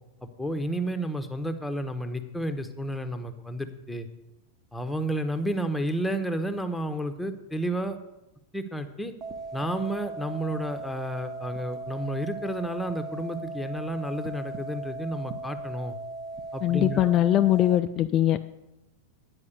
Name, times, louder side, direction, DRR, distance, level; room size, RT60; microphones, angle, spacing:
voice 1, 0.2-4.1 4.7-8.0 8.5-9.1 9.5-16.0 16.5-17.1, right 1 dB, 5° left, 8 dB, 0.8 m, -31 dB
sound 1, 9.2-17.8, right 2 dB, 25° right, 0.9 m, -38 dB
voice 2, 16.6-18.4, left 12 dB, 35° left, 8 dB, 0.3 m, -22 dB
9.7 x 5.0 x 8.0 m, 0.96 s
figure-of-eight pair, 90°, 0 cm